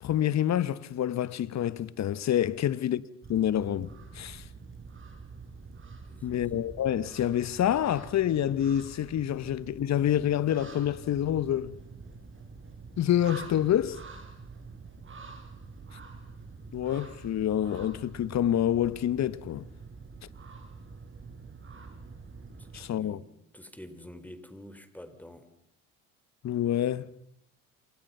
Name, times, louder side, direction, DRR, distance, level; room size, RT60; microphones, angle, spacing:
voice 1, 0.0-3.0 3.3-4.4 6.2-11.7 13.0-14.0 16.7-19.7 22.7-23.2 26.4-27.1, left 11 dB, 50° left, 1.3 m, -27 dB
sound 1, 3.2-22.9, right 4 dB, 35° right, 5.2 m, -46 dB
voice 2, 6.0-6.5 22.7-23.3 23.5-25.4, left 1 dB, 5° left, 4.3 m, -48 dB
28.0 x 26.5 x 5.7 m
hypercardioid pair, 65°, 34 cm